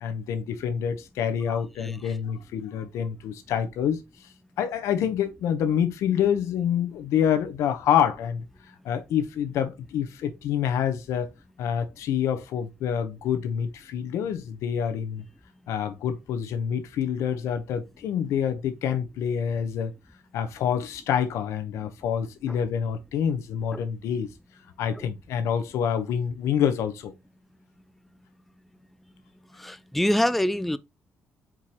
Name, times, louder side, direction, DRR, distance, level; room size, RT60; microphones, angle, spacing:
voice 1, 0.0-4.0 4.6-8.4 8.8-11.3 11.6-15.2 15.7-19.9 20.3-24.3 24.8-27.1, left 8 dB, 80° left, 0.7 m, -27 dB
voice 2, 1.5-2.2 22.5-22.6 23.7-23.8 24.9-25.1 29.5-30.8, left 1 dB, 5° left, 0.3 m, -27 dB
4.5 x 3.7 x 2.8 m
cardioid pair, 75°, 5 cm